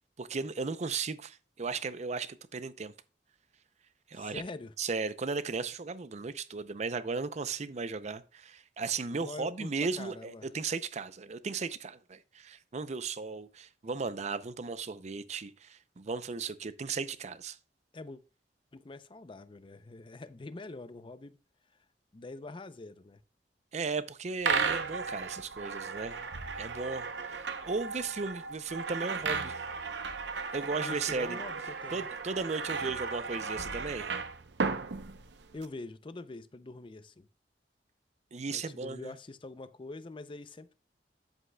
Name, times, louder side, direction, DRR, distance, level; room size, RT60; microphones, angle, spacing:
voice 1, 0.2-2.9 4.1-4.4 4.8-17.6 23.7-26.2 26.6-29.6 30.5-31.4 31.9-34.1 38.3-39.1, right 4 dB, 40° right, 0.5 m, -36 dB
voice 2, 4.1-4.7 9.1-9.7 10.0-10.5 17.9-18.2 18.7-21.4 22.1-23.2 30.8-32.1 35.5-37.3 38.5-40.7, left 2 dB, 30° left, 0.5 m, -44 dB
sound 1, 24.4-35.7, right 5 dB, 80° right, 0.7 m, -35 dB
10.0 x 8.0 x 2.3 m
head